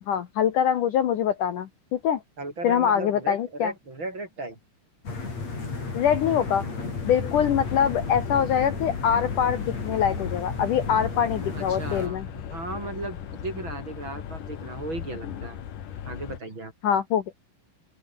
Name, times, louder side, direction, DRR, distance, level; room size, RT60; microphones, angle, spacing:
voice 1, 0.1-2.2 2.6-3.7 5.9-6.6 7.0-12.3 16.8-17.2, left 8 dB, 90° left, 1.8 m, -24 dB
voice 2, 2.4-4.6 11.5-15.6 16.0-16.7, right 2 dB, 25° right, 5.9 m, -36 dB
sound 1, 5.0-12.1, left 4 dB, 30° left, 6.9 m, -33 dB
sound 2, 6.9-16.4, left 9 dB, 50° left, 2.8 m, -37 dB
open air
omnidirectional pair, 5.9 m